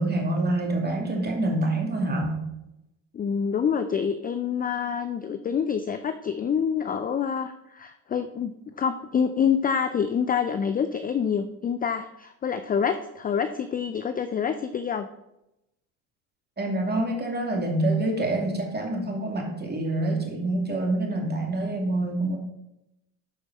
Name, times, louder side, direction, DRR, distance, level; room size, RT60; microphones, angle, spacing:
voice 1, 0.0-2.4 16.6-22.4, right 2 dB, 20° right, 1 dB, 2.5 m, -26 dB
voice 2, 3.1-8.5 8.8-15.1, left 7 dB, 20° left, 10 dB, 0.4 m, -27 dB
12.0 x 4.7 x 4.1 m, 0.88 s
supercardioid pair, 85°, 46 cm